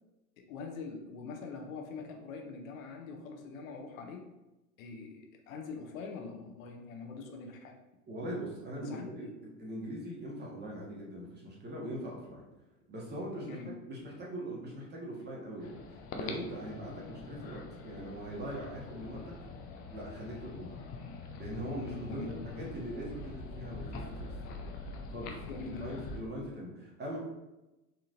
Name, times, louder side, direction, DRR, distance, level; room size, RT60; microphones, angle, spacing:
voice 1, 0.4-4.2 4.8-7.8 8.8-9.3 13.4-13.7 22.1-22.3 25.5-25.9, left 4 dB, 60° left, 3 dB, 0.8 m, -43 dB
voice 2, 8.1-12.4 12.9-13.6 13.9-15.8 16.1-19.2 19.9-20.8 21.4-24.3 25.1-27.2, right 1 dB, 20° right, -3 dB, 1.3 m, -41 dB
sound 1, 15.6-26.2, left 3 dB, 25° left, 0.3 m, -44 dB
4.2 x 3.6 x 2.6 m, 1.0 s
figure-of-eight pair, 80°, 46 cm